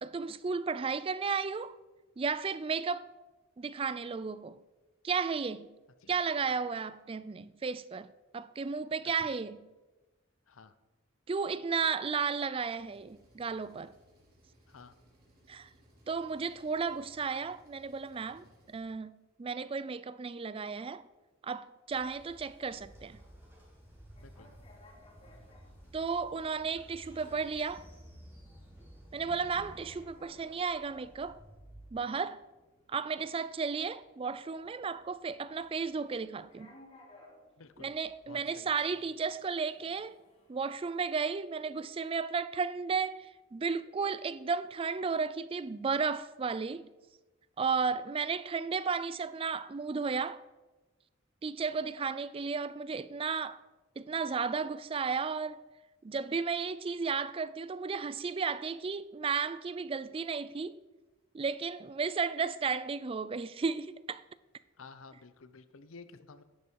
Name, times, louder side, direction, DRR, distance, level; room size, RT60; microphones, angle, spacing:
voice 1, 0.0-1.8 2.2-3.1 3.6-4.6 5.0-5.7 6.1-8.1 8.3-9.6 11.3-13.9 15.5-15.7 16.1-21.1 21.4-23.2 25.9-27.8 29.1-31.4 31.9-32.4 32.9-36.7 37.8-40.2 40.5-46.9 47.6-50.4 51.4-53.6 54.0-55.6 56.0-60.8 61.3-64.2, right 5 dB, 25° right, 0.3 m, -34 dB
Engine, 12.8-18.8, equal, 50° right, 3.1 m, -64 dB
Train, 21.9-31.9, equal, 10° right, 2.6 m, -54 dB
sound 1, 24.2-41.7, left 1 dB, 30° left, 3.1 m, -62 dB
voice 2, 37.6-37.9 38.2-38.7 64.8-66.4, left 4 dB, 80° left, 0.8 m, -52 dB
11.0 x 9.9 x 4.6 m
head